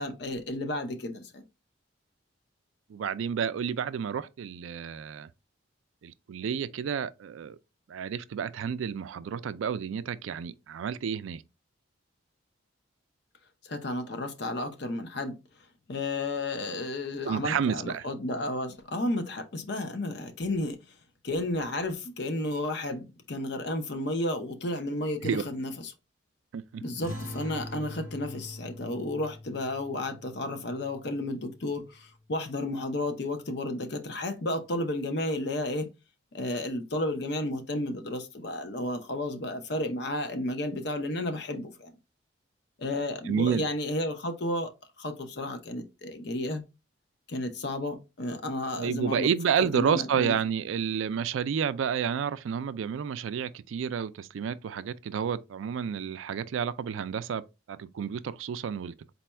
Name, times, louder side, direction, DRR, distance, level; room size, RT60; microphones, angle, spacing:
voice 1, 0.0-1.4 13.6-15.4 15.9-20.8 21.2-25.9 26.8-35.9 36.3-41.9 42.8-44.7 45.0-46.6 47.3-49.3 49.6-50.4, left 1 dB, 55° left, 0.7 m, -32 dB
voice 2, 2.9-5.3 6.0-7.6 7.9-11.4 17.2-18.0 25.2-25.4 26.5-26.8 43.3-43.6 48.8-57.4 57.7-59.1, right 7 dB, 75° right, 0.3 m, -30 dB
sound 1, 27.0-32.0, left 1 dB, 80° left, 2.7 m, -43 dB
4.1 x 2.3 x 4.2 m
head